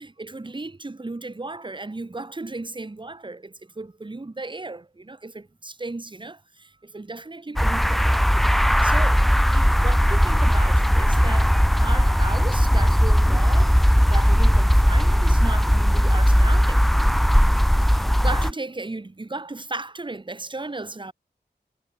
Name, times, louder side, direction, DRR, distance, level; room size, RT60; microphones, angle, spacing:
voice 1, 0.0-8.3 8.8-11.5 11.8-16.8 17.8-21.1, right 2 dB, 25° right, 1.2 m, -35 dB
sound 1, 7.6-18.5, equal, ahead, 0.5 m, -18 dB
wide cardioid pair, 75°, 18 cm